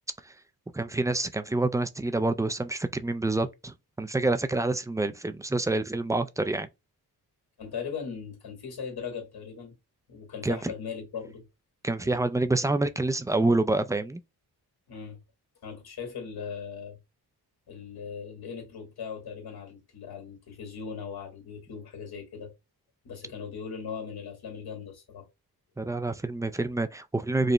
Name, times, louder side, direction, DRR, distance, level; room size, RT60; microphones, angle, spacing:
voice 1, 0.7-6.7 10.4-10.7 11.8-14.2 25.8-27.5, right 2 dB, 10° right, 0.4 m, -27 dB
voice 2, 7.6-9.7 10.1-11.4 12.0-12.2 14.9-15.2 15.6-17.0 17.7-22.5 23.0-25.3, left 6 dB, 70° left, 2.0 m, -39 dB
4.9 x 2.2 x 3.0 m
cardioid pair, 75°, 39 cm